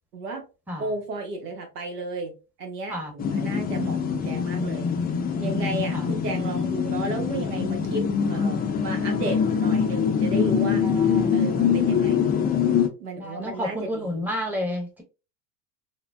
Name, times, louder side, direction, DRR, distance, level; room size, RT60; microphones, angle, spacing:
voice 1, 0.1-0.4 0.8-2.3 2.6-4.9 5.4-10.8 11.3-12.4 13.0-14.3, right 2 dB, 80° right, 4 dB, 1.0 m, -33 dB
sound 1, 3.2-12.9, left 7 dB, 20° left, 0.4 m, -24 dB
voice 2, 10.8-11.3 13.2-15.0, equal, 5° right, 2 dB, 0.8 m, -31 dB
3.4 x 2.1 x 2.3 m, 0.30 s
hypercardioid pair, 85°, 46 cm